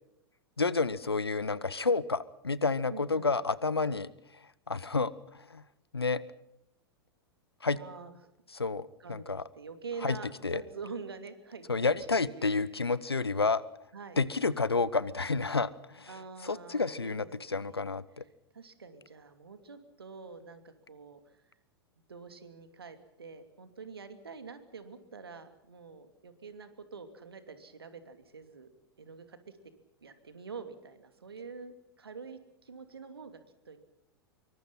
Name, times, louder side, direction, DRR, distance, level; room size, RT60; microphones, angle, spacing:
voice 1, 0.6-4.1 4.7-5.6 5.9-6.2 7.6-7.8 8.5-9.4 10.0-10.2 10.4-10.6 11.7-13.6 14.2-16.1 16.4-18.2, left 4 dB, 80° left, 20 dB, 1.0 m, -30 dB
voice 2, 2.9-3.3 7.7-8.2 9.0-12.6 13.9-14.2 16.1-17.9 18.5-21.4 22.1-28.7 29.0-29.5 30.0-33.8, right 5 dB, 75° right, 9 dB, 2.8 m, -46 dB
26.0 x 23.5 x 5.7 m, 0.82 s
figure-of-eight pair, 95°, 13 cm